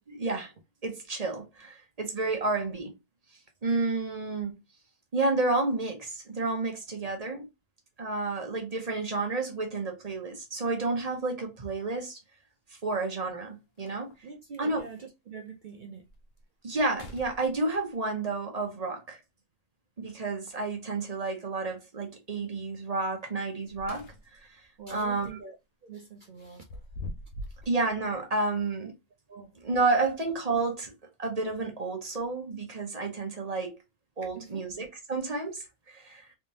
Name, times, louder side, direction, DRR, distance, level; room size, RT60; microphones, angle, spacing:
voice 1, 0.1-0.5 0.8-2.9 3.6-4.6 5.1-7.5 8.0-12.2 12.8-14.1 14.6-14.8 16.6-19.2 20.0-24.0 24.3-24.6 24.9-25.4 27.7-28.9 29.6-30.9 31.2-33.8 34.2-36.3, right 3 dB, 35° right, 0.8 m, -30 dB
sound 1, 11.1-11.2 12.9-13.0 13.4-13.5 13.8-14.3 14.9-15.0 15.6-15.7 16.1-16.4 16.8-17.9 20.0-20.7 23.4-24.5 24.9-25.1 26.4-27.7, left 1 dB, 70° left, 1.0 m, -44 dB
voice 2, 14.2-16.0 24.8-25.6 25.8-26.6 29.3-29.6 34.3-34.7, right 5 dB, 70° right, 0.4 m, -44 dB
3.6 x 3.3 x 2.7 m
omnidirectional pair, 1.4 m